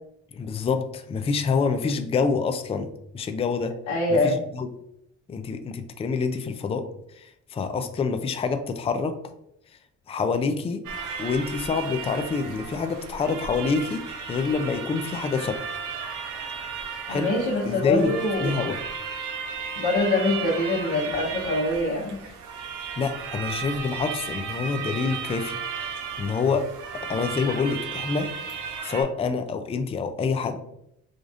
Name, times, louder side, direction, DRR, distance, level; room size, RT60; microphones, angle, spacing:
voice 1, 0.3-2.9 3.1-3.7 4.1-4.7 5.3-6.9 7.2-9.2 10.1-10.8 11.2-15.6 17.1-17.3 17.6-18.1 18.4-18.8 23.0-26.6 26.9-28.3 28.8-30.6, left 5 dB, 20° left, 8 dB, 0.3 m, -27 dB
voice 2, 3.9-4.4 17.1-18.5 19.8-22.2, left 2 dB, 85° left, -6 dB, 1.0 m, -24 dB
sound 1, 10.8-29.0, right 6 dB, 85° right, 0.8 m, -35 dB
4.9 x 2.5 x 2.4 m, 0.76 s
cardioid pair, 90°, 30 cm